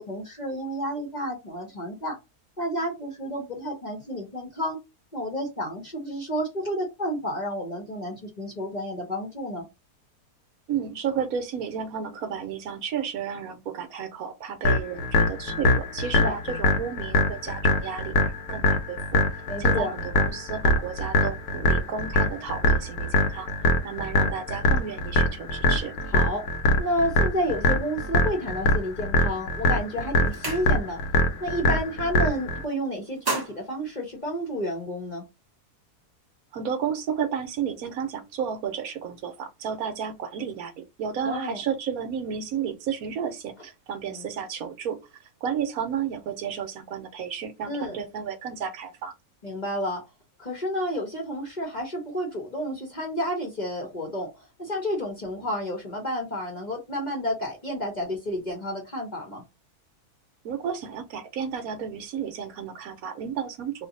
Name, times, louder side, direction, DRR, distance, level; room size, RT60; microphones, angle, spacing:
voice 1, 0.0-2.2 2.6-4.8 5.1-9.7 16.1-16.4 19.5-19.9 26.1-26.4 26.8-31.0 31.4-35.2 41.2-41.6 44.1-44.3 47.7-48.0 49.4-50.0 50.4-54.3 54.6-59.4, equal, 35° left, 0.8 m, -30 dB
voice 2, 10.7-19.0 19.6-23.5 23.8-25.9 36.5-45.0 45.4-49.1 60.4-63.9, right 7 dB, 70° right, 1.0 m, -32 dB
sound 1, 14.6-32.6, left 2 dB, 75° left, 1.1 m, -23 dB
sound 2, 29.4-29.7 30.0-31.1 31.5-31.8 32.1-32.6 33.0-34.8, right 3 dB, 30° right, 0.4 m, -35 dB
2.6 x 2.5 x 3.8 m
omnidirectional pair, 1.7 m